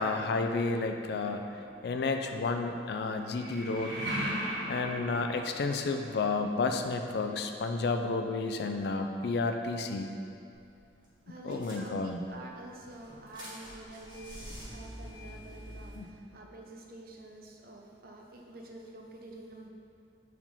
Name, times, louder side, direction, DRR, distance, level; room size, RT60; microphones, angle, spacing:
voice 1, 0.0-1.4 1.8-4.0 4.7-10.1 11.4-12.2 16.0-16.1, left 3 dB, 65° left, 6 dB, 0.4 m, -31 dB
sound 1, 1.2-2.0 3.3-6.1, equal, 85° right, 1.3 m, -37 dB
sound 2, 10.5-10.8 11.0-11.1 11.5-12.3 12.8-16.0, equal, 25° right, 1.2 m, -46 dB
voice 2, 11.3-19.7, right 2 dB, 55° right, 1 dB, 0.6 m, -48 dB
4.8 x 3.5 x 5.4 m, 2.5 s
head